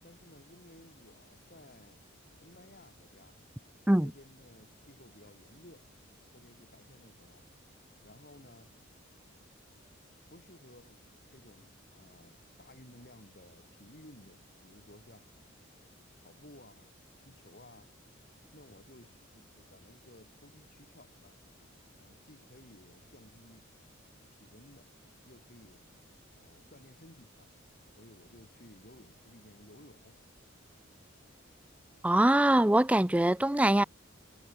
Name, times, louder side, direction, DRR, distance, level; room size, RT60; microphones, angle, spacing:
voice 1, 0.0-2.0 2.4-3.4 3.9-5.9 6.3-7.5 8.0-8.7 10.3-11.0 11.3-15.3 16.2-18.0 18.5-21.4 22.0-23.7 24.3-24.9 25.2-25.9 26.3-27.5 27.9-30.2, left 1 dB, 45° left, 6.8 m, -57 dB
voice 2, 32.0-33.8, right 1 dB, 5° right, 0.4 m, -23 dB
head